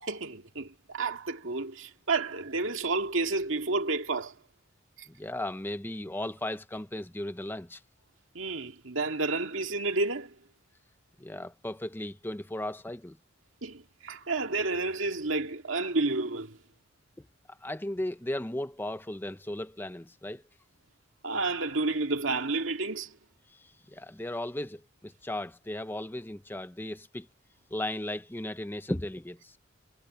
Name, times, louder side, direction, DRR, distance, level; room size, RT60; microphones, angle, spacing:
voice 1, 0.0-4.3 5.0-5.1 8.3-10.3 13.6-16.6 21.2-23.1, right 3 dB, 75° right, 2.1 m, -30 dB
voice 2, 5.1-7.8 11.2-13.2 17.2-20.4 23.5-27.3 27.7-29.6, left 1 dB, 10° left, 0.6 m, -36 dB
head